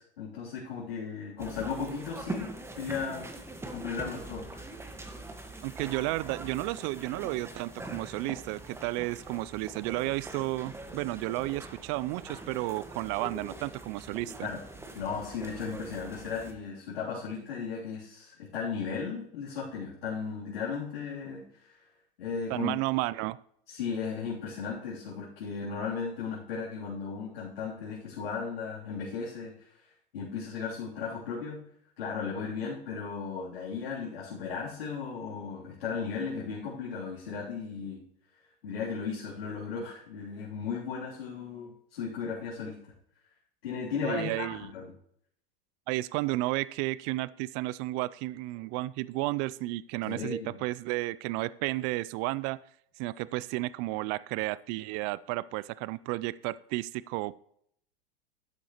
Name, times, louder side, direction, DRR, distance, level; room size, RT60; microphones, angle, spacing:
voice 1, 0.0-2.5 2.8-3.3 3.7-4.6 14.4-14.6 14.9-21.8 22.2-22.7 23.7-29.5 30.1-31.6 32.0-38.0 38.6-42.7 43.6-44.9 50.0-50.6, left 5 dB, 75° left, -7 dB, 3.4 m, -36 dB
sound 1, 1.4-16.5, right 2 dB, 10° right, 1.5 m, -43 dB
voice 2, 5.6-14.5 22.5-23.4 44.0-44.7 45.9-52.6 53.0-57.4, right 19 dB, 45° right, 20 dB, 0.4 m, -32 dB
12.5 x 9.0 x 3.1 m, 0.68 s
hypercardioid pair, 105°, 30 cm